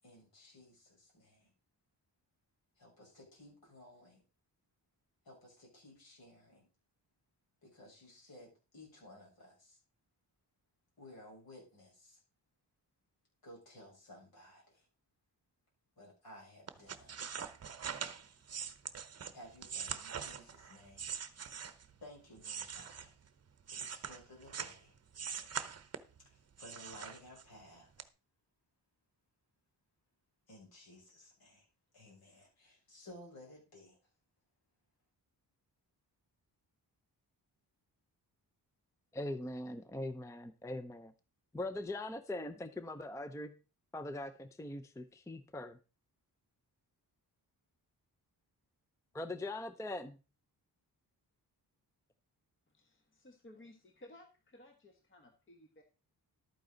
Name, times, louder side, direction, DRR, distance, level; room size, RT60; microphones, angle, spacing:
voice 1, 0.0-1.5 2.8-4.2 5.3-6.7 7.6-9.8 11.0-12.2 13.4-14.9 16.0-17.2 19.3-21.1 22.0-23.1 23.7-24.9 26.3-28.1 30.5-31.7 31.9-34.0, left 1 dB, 65° left, -2 dB, 7.0 m, -56 dB
sound 1, 16.7-21.9 22.4-24.8 25.1-26.2 26.6-27.6 28.0-28.1, right 7 dB, 40° right, 0.8 m, -43 dB
voice 2, 39.1-41.1 41.5-43.5 43.9-45.8 49.1-50.2, left 1 dB, 10° left, 10 dB, 0.5 m, -41 dB
voice 3, 52.7-55.8, left 1 dB, 30° left, 4 dB, 1.3 m, -58 dB
12.0 x 9.2 x 3.9 m, 0.32 s
wide cardioid pair, 180°, 39 cm